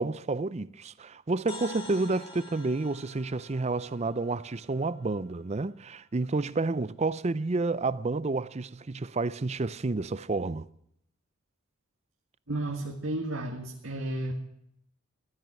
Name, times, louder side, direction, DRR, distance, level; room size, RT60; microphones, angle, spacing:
voice 1, 0.0-10.7, right 3 dB, 30° right, 0.5 m, -30 dB
sound 1, 1.5-5.4, left 3 dB, 30° left, 4.3 m, -48 dB
voice 2, 12.5-14.3, right 1 dB, 70° right, 1.8 m, -33 dB
15.5 x 12.5 x 6.0 m
head